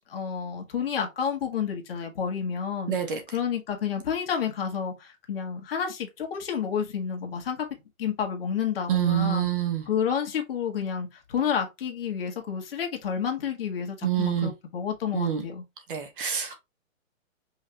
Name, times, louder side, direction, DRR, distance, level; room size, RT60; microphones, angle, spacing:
voice 1, 0.1-2.9 3.3-7.6 8.0-9.5 9.9-15.6, left 7 dB, 45° left, 1.5 m, -30 dB
voice 2, 2.9-3.2 8.9-9.9 14.0-14.5 15.1-15.4 15.9-16.5, right 10 dB, 40° right, 1.3 m, -26 dB
5.5 x 3.3 x 2.9 m
hypercardioid pair, 170°, 41 cm